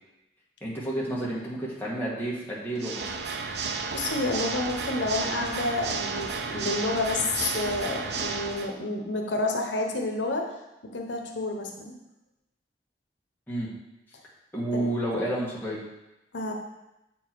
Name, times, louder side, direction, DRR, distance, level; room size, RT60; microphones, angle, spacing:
voice 1, 0.6-3.1 13.5-13.7 14.5-15.8, right 1 dB, 10° left, -6 dB, 1.5 m, -30 dB
Water / Mechanisms, 2.7-8.7, right 4 dB, 65° right, 0.5 m, -32 dB
voice 2, 3.9-10.5 10.8-12.0 14.7-14.8 16.3-16.5, left 2 dB, 90° left, 2 dB, 0.9 m, -29 dB
7.6 x 4.6 x 4.5 m, 0.94 s
head